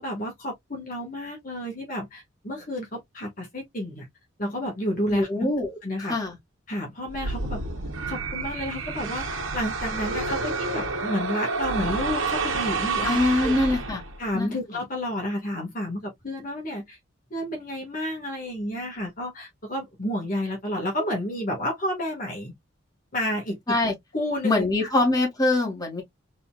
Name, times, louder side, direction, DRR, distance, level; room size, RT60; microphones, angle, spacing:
voice 1, 0.0-4.1 4.4-5.5 5.8-6.1 6.7-7.6 8.1-9.3 9.5-13.5 14.2-17.0 17.3-22.5 23.1-23.8 24.1-24.9, equal, 40° left, 1.8 m, -30 dB
voice 2, 5.1-5.7 6.0-6.4 13.0-14.0 14.3-14.6 23.7-23.9 24.4-26.0, left 2 dB, 20° left, 2.2 m, -23 dB
sound 1, 7.1-14.3, right 3 dB, 90° right, 1.4 m, -29 dB
4.0 x 4.0 x 2.4 m
head